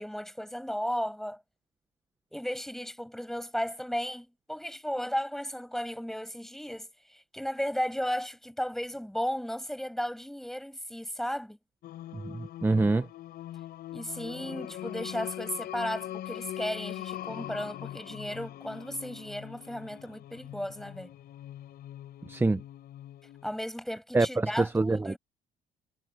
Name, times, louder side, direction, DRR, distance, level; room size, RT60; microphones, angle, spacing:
voice 1, 0.0-1.4 2.3-11.6 13.9-21.1 23.4-25.2, equal, ahead, 7.9 m, -35 dB
Singing, 11.8-23.6, left 12 dB, 65° left, 6.3 m, -42 dB
voice 2, 12.1-13.1 22.3-22.6 24.1-25.2, right 3 dB, 15° right, 1.0 m, -26 dB
cardioid pair, 110°, 17 cm